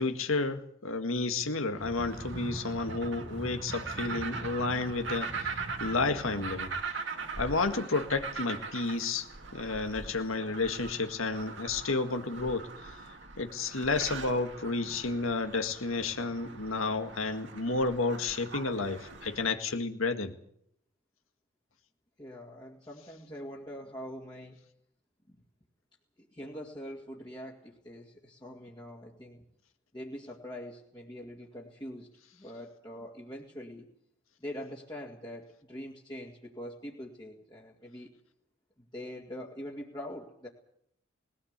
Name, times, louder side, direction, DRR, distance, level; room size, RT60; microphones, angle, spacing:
voice 1, 0.0-6.7 7.4-9.3 9.5-12.7 13.4-20.3, left 3 dB, 90° left, 7 dB, 1.9 m, -31 dB
sound 1, 1.8-6.8, right 1 dB, 30° right, 1.7 m, -43 dB
sound 2, 1.8-19.5, right 4 dB, 60° right, 2.2 m, -41 dB
voice 2, 22.2-24.6 25.3-25.4 26.3-29.4 29.9-33.9 34.4-38.1 38.8-40.5, equal, 20° left, -3 dB, 2.3 m, -43 dB
20.5 x 17.5 x 8.2 m, 0.72 s
head